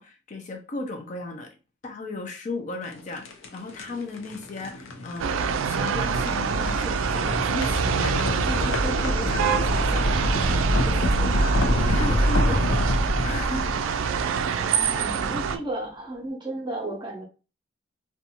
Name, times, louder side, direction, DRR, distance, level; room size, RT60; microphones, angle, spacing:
voice 1, 0.0-1.6 1.8-14.1, left 2 dB, 40° left, 0.4 m, -35 dB
sound 1, 2.8-14.9, left 1 dB, 85° left, 0.6 m, -27 dB
sound 2, 5.2-15.6, right 6 dB, 90° right, 0.3 m, -26 dB
voice 2, 14.5-17.2, right 1 dB, 25° right, 0.7 m, -33 dB
2.5 x 2.2 x 2.8 m
head